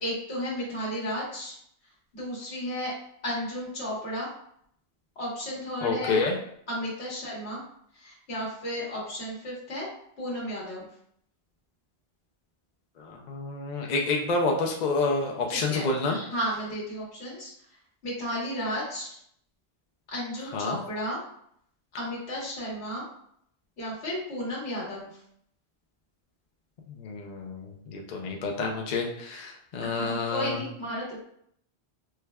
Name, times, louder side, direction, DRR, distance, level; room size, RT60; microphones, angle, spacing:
voice 1, 0.0-1.6 2.1-2.9 3.2-4.3 5.2-6.1 6.7-7.6 7.9-9.9 10.2-10.8 15.5-17.5 18.0-19.2 20.1-21.3 22.0-23.1 23.8-25.2 30.0-31.2, equal, 75° left, -6 dB, 1.4 m, -33 dB
voice 2, 5.8-6.3 13.0-16.2 20.5-20.8 27.0-30.6, left 3 dB, 55° left, 0 dB, 0.5 m, -28 dB
4.6 x 2.2 x 2.2 m, 0.68 s
omnidirectional pair, 1.1 m